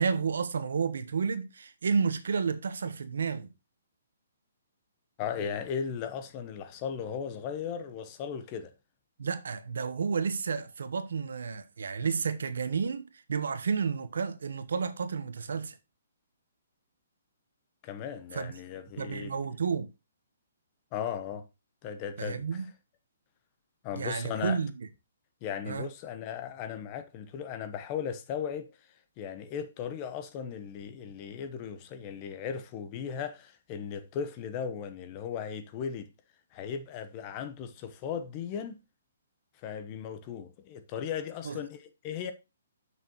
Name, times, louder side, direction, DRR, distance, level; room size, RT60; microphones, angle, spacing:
voice 1, 0.0-3.5 9.2-15.8 18.3-18.5 19.0-19.9 22.2-22.7 23.9-24.9 25.7-25.9 41.4-41.6, right 5 dB, 75° right, 1.1 m, -31 dB
voice 2, 5.2-8.7 17.8-19.4 20.9-21.5 21.8-22.6 23.8-24.6 25.4-28.9 29.2-36.1 36.5-38.8 39.6-42.3, left 7 dB, 25° left, 1.0 m, -37 dB
7.2 x 6.4 x 3.0 m
hypercardioid pair, 160°, 0 cm